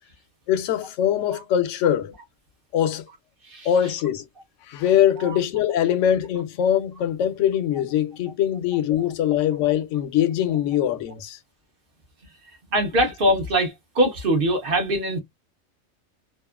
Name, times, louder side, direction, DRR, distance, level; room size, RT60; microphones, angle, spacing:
voice 1, 0.5-2.1 2.7-3.0 3.6-4.2 4.7-11.4, left 10 dB, 70° left, 0.9 m, -22 dB
voice 2, 12.7-15.2, right 1 dB, 50° right, 0.9 m, -22 dB
2.8 x 2.4 x 2.2 m
omnidirectional pair, 1.4 m